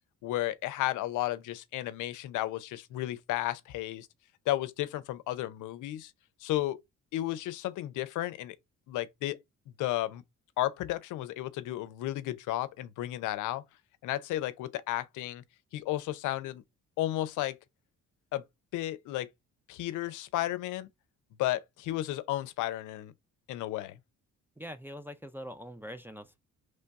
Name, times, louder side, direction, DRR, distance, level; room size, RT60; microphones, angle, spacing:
voice 1, 0.2-4.1 4.5-6.1 6.4-6.8 7.1-8.6 8.9-9.4 9.8-10.2 10.6-13.6 14.0-15.4 15.7-16.6 17.0-17.6 18.3-18.4 18.7-19.3 19.7-20.9 21.4-23.1 23.5-24.0, left 15 dB, 85° left, 0.5 m, -33 dB
voice 2, 24.6-26.4, equal, 5° right, 0.4 m, -43 dB
3.2 x 2.3 x 3.9 m
cardioid pair, 90°, 30 cm